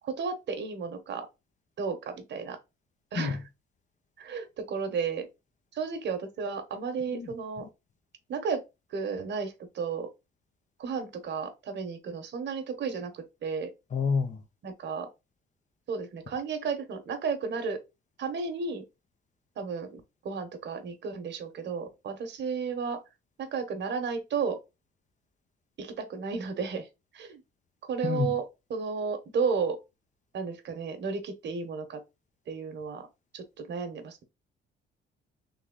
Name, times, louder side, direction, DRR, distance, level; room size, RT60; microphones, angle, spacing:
voice 1, 0.0-1.3 1.8-2.6 3.1-3.4 4.2-5.3 5.7-7.7 8.3-8.6 8.9-10.1 10.8-13.7 14.6-15.1 15.9-17.8 18.2-18.9 19.6-23.0 23.4-24.6 25.8-26.9 27.1-27.4 27.8-28.4 28.7-29.8 30.3-32.0 32.5-33.1 33.3-34.2, right 5 dB, 60° right, 1.1 m, -33 dB
voice 2, 13.9-14.4 28.0-28.3, left 5 dB, 40° left, 0.6 m, -28 dB
3.5 x 3.0 x 3.8 m
cardioid pair, 90°, 20 cm